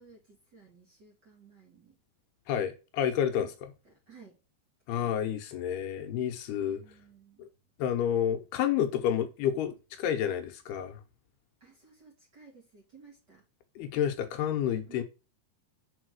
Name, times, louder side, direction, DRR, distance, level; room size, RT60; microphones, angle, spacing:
voice 1, 0.0-2.0 3.8-4.4 4.9-5.1 6.7-7.4 8.2-8.3 11.6-13.4 14.8-15.0, right 5 dB, 30° right, 2.2 m, -56 dB
voice 2, 2.5-3.7 4.9-6.8 7.4-7.5 7.8-11.0 13.8-15.0, left 9 dB, 80° left, 2.9 m, -30 dB
7.2 x 4.5 x 6.4 m
omnidirectional pair, 4.7 m